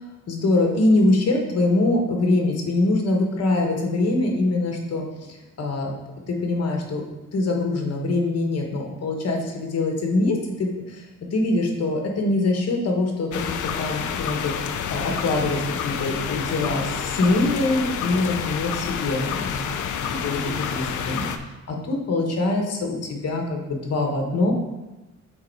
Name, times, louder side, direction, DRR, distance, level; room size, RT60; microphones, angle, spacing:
voice 1, 0.3-5.9 6.3-7.0 7.3-11.1 11.3-21.2 21.7-24.5, left 2 dB, 55° left, 1 dB, 1.3 m, -24 dB
sound 1, 13.3-21.4, left 8 dB, 85° left, 0.6 m, -29 dB
6.7 x 4.2 x 4.5 m, 1.1 s
wide cardioid pair, 135°, 29 cm